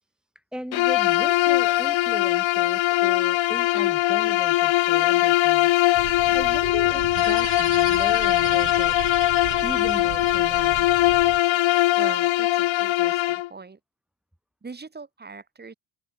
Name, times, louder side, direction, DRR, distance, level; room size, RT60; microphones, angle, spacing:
voice 1, 0.4-5.8 6.3-9.0 9.6-11.0, equal, ahead, 1.9 m, -38 dB
Bowed string instrument, 0.7-13.5, left 17 dB, 65° left, 1.1 m, -21 dB
sound 1, 5.9-11.4, right 18 dB, 80° right, 1.6 m, -38 dB
sound 2, 7.1-12.1, right 12 dB, 55° right, 3.3 m, -40 dB
voice 2, 12.0-13.8 14.6-15.7, right 4 dB, 20° right, 4.2 m, -41 dB
cardioid pair, 145°, 49 cm